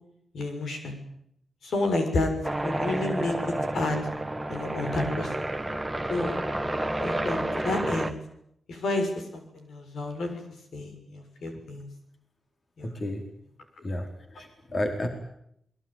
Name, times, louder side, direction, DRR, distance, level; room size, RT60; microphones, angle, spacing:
voice 1, 0.3-0.9 1.6-2.3 2.6-4.0 4.5-5.3 6.1-6.4 7.0-8.1 8.7-10.4 10.7-11.9 12.8-12.9, left 2 dB, 80° left, 5 dB, 6.7 m, -30 dB
sound 1, 2.4-8.1, right 1 dB, 5° right, 2.0 m, -30 dB
voice 2, 12.8-13.3 13.8-15.1, left 1 dB, 40° left, 4 dB, 4.4 m, -32 dB
28.0 x 21.0 x 9.2 m, 0.74 s
wide cardioid pair, 100°, 0 cm